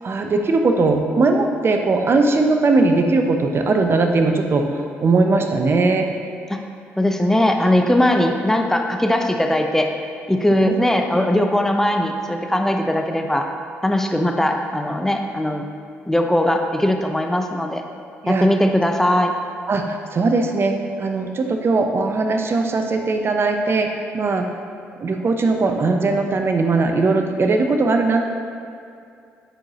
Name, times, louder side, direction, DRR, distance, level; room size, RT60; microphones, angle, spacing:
voice 1, 0.0-4.7 5.0-6.1 10.5-10.7 18.2-18.5 19.7-24.5 25.0-28.2, right 3 dB, 45° right, 4 dB, 0.7 m, -19 dB
voice 2, 7.0-9.9 10.3-13.5 13.8-15.6 16.1-17.8 18.3-19.3, left 1 dB, 5° left, 4 dB, 0.7 m, -19 dB
8.9 x 4.7 x 2.9 m, 2.4 s
hypercardioid pair, 55°, 6 cm